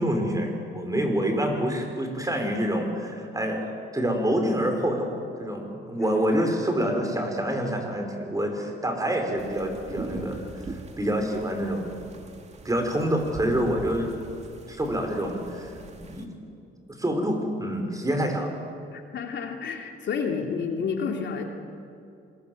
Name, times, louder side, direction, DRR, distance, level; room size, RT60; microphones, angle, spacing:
voice 1, 0.0-5.1 5.4-11.9 12.6-14.1 14.7-15.7 16.0-16.3 17.0-18.5, equal, 15° right, 4 dB, 5.3 m, -27 dB
sound 1, 9.4-16.3, right 3 dB, 35° right, 2.3 m, -41 dB
voice 2, 18.9-21.4, left 5 dB, 65° left, 2 dB, 3.1 m, -30 dB
26.0 x 21.5 x 8.0 m, 2.5 s
cardioid pair, 90°, 20 cm